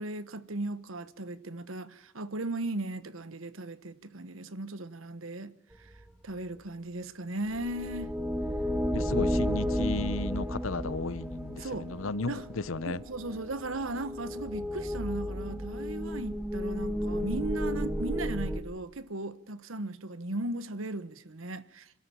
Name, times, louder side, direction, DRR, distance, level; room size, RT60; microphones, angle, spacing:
voice 1, 0.0-5.5 5.8-5.9 6.2-8.2 11.6-11.9 12.3-12.5 12.8-21.9, right 2 dB, 80° right, 1.3 m, -37 dB
sound 1, 7.5-18.6, equal, 5° right, 1.4 m, -33 dB
voice 2, 8.9-12.4 12.7-13.0, left 3 dB, 85° left, 0.9 m, -34 dB
27.0 x 13.0 x 9.1 m
head